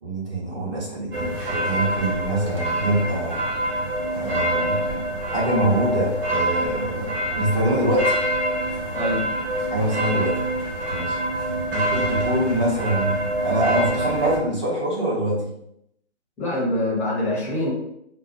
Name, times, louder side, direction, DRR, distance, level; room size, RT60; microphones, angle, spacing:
voice 1, 0.0-3.4 4.2-5.0 5.3-8.2 9.7-10.3 10.9-11.2 11.7-15.5, right 1 dB, 25° right, -4 dB, 0.9 m, -24 dB
sound 1, 1.1-14.4, right 1 dB, 50° right, 1.0 m, -26 dB
voice 2, 16.4-17.7, left 1 dB, 5° left, -8 dB, 0.7 m, -24 dB
3.7 x 2.0 x 3.0 m, 0.76 s
figure-of-eight pair, 145°, 35 cm